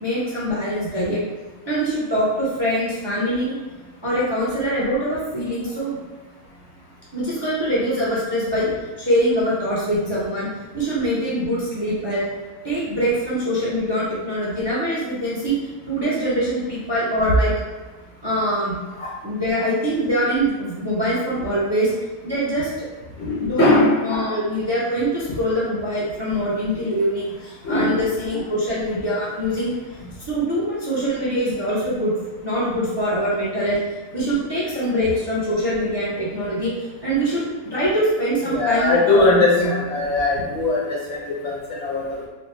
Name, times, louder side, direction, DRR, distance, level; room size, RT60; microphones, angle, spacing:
voice 1, 0.0-1.2 1.7-3.5 4.0-6.0 7.1-8.7 9.0-12.2 12.6-15.5 15.9-17.5 18.2-18.8 19.2-21.9 22.2-22.7 23.4-23.8 24.0-29.7 30.3-32.1 32.4-33.8 34.1-39.8, equal, 25° right, -7 dB, 0.6 m, -23 dB
voice 2, 23.2-23.9 27.6-28.0 38.5-42.3, left 2 dB, 55° left, -5 dB, 0.9 m, -20 dB
4.3 x 2.1 x 3.2 m, 1.3 s
omnidirectional pair, 1.5 m